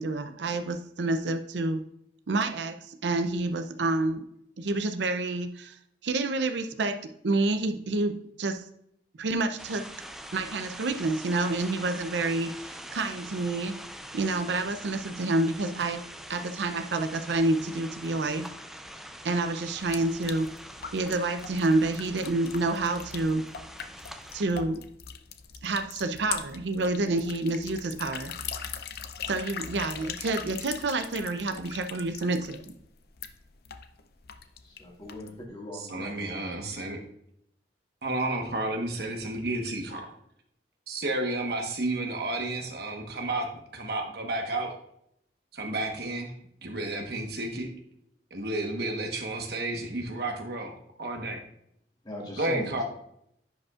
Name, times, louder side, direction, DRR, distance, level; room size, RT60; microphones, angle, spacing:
voice 1, 0.0-1.8 2.3-4.2 4.6-5.8 6.0-8.6 9.2-9.9 10.3-13.7 14.1-16.0 16.3-18.5 19.2-20.5 20.9-23.4 24.3-24.8 25.6-28.3 29.3-32.7, right 2 dB, 80° right, 8 dB, 0.5 m, -28 dB
sound 1, 9.6-24.4, equal, ahead, 0.4 m, -44 dB
sound 2, 19.8-35.5, left 7 dB, 60° left, 0.5 m, -41 dB
voice 2, 34.6-36.4 52.0-52.8, left 1 dB, 25° left, -2 dB, 1.9 m, -39 dB
voice 3, 35.9-37.0 38.0-40.1 40.9-43.5 43.7-44.7 45.5-46.3 46.6-47.7 48.3-51.4 52.4-52.8, right 2 dB, 60° right, 3 dB, 1.2 m, -31 dB
10.5 x 5.2 x 2.4 m, 0.72 s
head